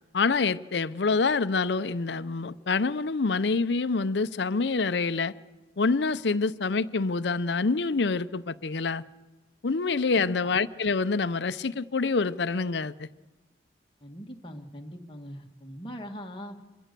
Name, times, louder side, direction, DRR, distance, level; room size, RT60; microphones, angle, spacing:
voice 1, 0.1-5.3 5.8-9.0 9.6-13.1, left 4 dB, 70° left, 0.7 m, -26 dB
voice 2, 14.0-16.5, equal, 25° left, 1.8 m, -41 dB
26.0 x 23.0 x 6.8 m
head